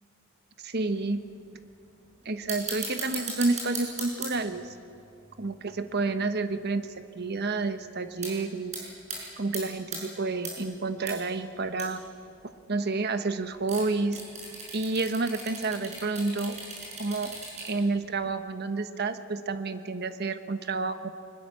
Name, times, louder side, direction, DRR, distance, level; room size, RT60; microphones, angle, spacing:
voice 1, 0.6-1.2 2.2-4.7 5.4-6.9 7.1-8.7 9.4-12.0 12.7-14.2 14.7-16.6 17.0-17.4 17.6-21.1, right 3 dB, 55° right, 10 dB, 1.1 m, -29 dB
sound 1, 1.0-1.1 1.5-1.9 2.2-6.7 7.2-7.3 7.5-7.8 8.2-8.3 8.7-9.2 9.5-10.0 10.4-11.1 11.4-11.5 11.7-12.0 13.6-17.9 18.2-18.3, right 3 dB, 35° right, 6.8 m, -38 dB
24.0 x 21.0 x 7.0 m, 2.7 s
head